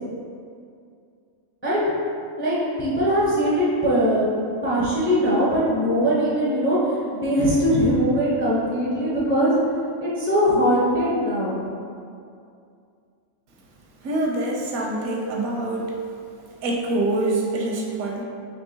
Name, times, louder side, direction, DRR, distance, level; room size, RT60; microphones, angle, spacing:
voice 1, 1.6-1.9 2.4-4.3 4.6-11.6 14.9-15.0, equal, 15° left, -8 dB, 0.4 m, -21 dB
voice 2, 14.0-16.0 16.6-18.2, right 2 dB, 80° right, -1 dB, 1.1 m, -25 dB
4.5 x 2.9 x 2.7 m, 2.4 s
omnidirectional pair, 1.4 m